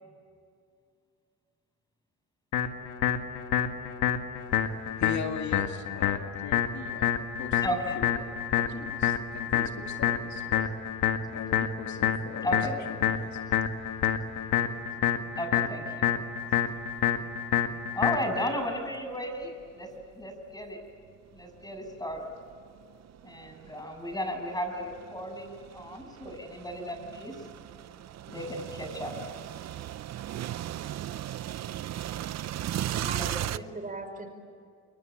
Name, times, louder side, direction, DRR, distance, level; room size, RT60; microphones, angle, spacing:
sound 1, 2.5-18.5, left 9 dB, 85° left, 1.9 m, -28 dB
voice 1, 5.0-8.2 8.5-10.6 11.3-12.6 12.9-13.4, left 7 dB, 70° left, 5 dB, 2.2 m, -39 dB
voice 2, 7.6-8.0 12.4-12.7 15.4-16.2 17.9-19.9 20.1-20.8 21.3-22.3 23.2-27.4 28.3-29.2 33.1-33.6, equal, 15° left, 5 dB, 7.0 m, -34 dB
sound 2, 16.8-17.0 17.5-17.6 18.6-20.2 20.9-33.6, right 12 dB, 60° right, 0.7 m, -38 dB
voice 3, 32.9-34.3, right 3 dB, 25° right, 6 dB, 5.3 m, -39 dB
28.5 x 23.5 x 8.9 m, 2.3 s
cardioid pair, 90°, 30 cm